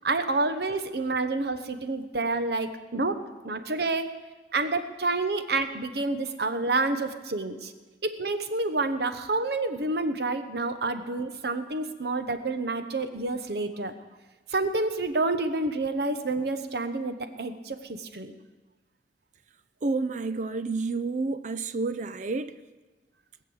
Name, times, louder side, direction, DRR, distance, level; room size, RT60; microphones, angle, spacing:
voice 1, 0.0-3.2 3.4-4.1 4.5-7.7 8.0-13.9 14.5-18.3, right 3 dB, 65° right, 1.0 m, -28 dB
voice 2, 19.8-22.6, right 3 dB, 45° right, 0.4 m, -29 dB
20.0 x 6.7 x 7.8 m
head